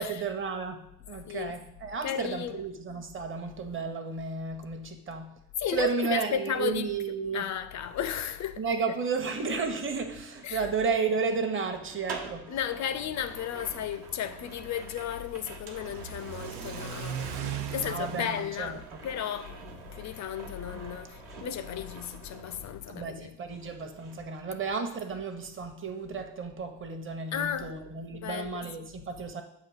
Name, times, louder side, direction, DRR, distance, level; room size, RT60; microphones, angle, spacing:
voice 1, 0.0-5.3 5.7-7.5 8.6-12.6 17.8-18.8 22.9-29.4, right 5 dB, 30° right, 0.9 m, -33 dB
voice 2, 2.0-2.6 5.6-6.9 7.3-8.6 10.4-10.7 12.5-23.3 27.3-27.7 28.1-28.9, left 9 dB, 45° left, 0.4 m, -34 dB
sound 1, 9.6-23.2 23.5-25.0 25.2-25.6, right 5 dB, 60° right, 1.1 m, -47 dB
Car / Accelerating revving vroom, 12.9-22.3, right 8 dB, 80° right, 0.6 m, -41 dB
7.3 x 2.7 x 5.5 m
hypercardioid pair, 50°, 43 cm